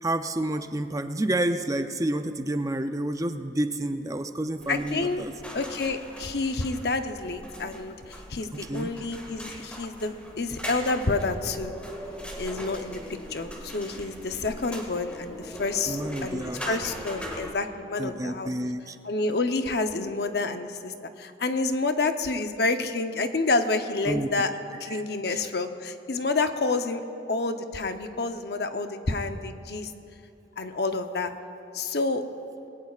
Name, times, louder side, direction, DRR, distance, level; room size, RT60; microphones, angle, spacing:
voice 1, 0.0-5.3 8.5-9.0 15.9-16.7 18.0-19.0 24.1-24.3 24.9-25.0 25.3-25.4, right 1 dB, 20° right, 8 dB, 0.5 m, -29 dB
sound 1, 4.6-17.5, equal, 5° left, 1.9 m, -40 dB
voice 2, 4.7-5.2 5.5-7.9 8.3-11.7 12.4-13.0 13.3-18.5 19.0-24.5 24.8-27.0 27.3-29.9 30.6-31.3 31.7-32.2, left 3 dB, 60° left, 7 dB, 0.8 m, -28 dB
21.5 x 17.5 x 2.4 m, 2.9 s
head